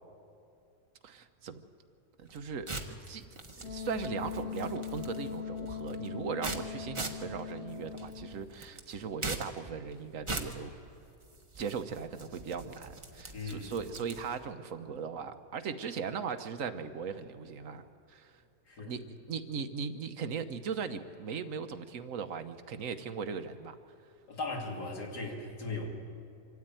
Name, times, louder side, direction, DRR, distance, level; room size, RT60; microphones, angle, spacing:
voice 1, 1.0-1.6 2.2-3.3 3.6-10.8 11.6-18.3 18.8-23.8, right 6 dB, 55° right, 9 dB, 1.2 m, -38 dB
sound 1, 2.2-14.5, right 2 dB, 20° right, 1.0 m, -43 dB
Wind instrument woodwind instrument, 3.6-8.4, left 7 dB, 20° left, 2.1 m, -40 dB
voice 2, 13.3-13.7 18.7-19.0 24.3-25.9, left 3 dB, 70° left, 0 dB, 3.0 m, -38 dB
25.5 x 13.0 x 9.1 m, 2.5 s
omnidirectional pair, 1.8 m